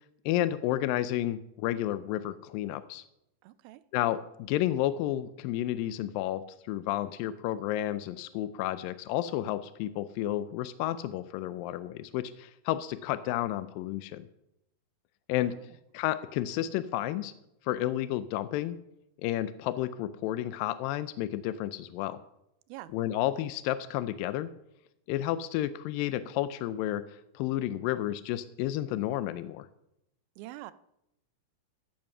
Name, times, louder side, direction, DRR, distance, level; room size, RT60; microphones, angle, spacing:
voice 1, 0.3-3.0 3.9-14.2 15.3-15.6 15.9-17.3 17.7-18.8 19.2-22.2 22.9-24.5 25.1-29.7, left 13 dB, 80° left, 13 dB, 2.2 m, -31 dB
voice 2, 3.4-3.8 15.4-15.6 22.7-22.9 30.4-30.7, right 16 dB, 85° right, 13 dB, 2.4 m, -45 dB
14.5 x 7.8 x 5.5 m, 0.82 s
omnidirectional pair, 4.3 m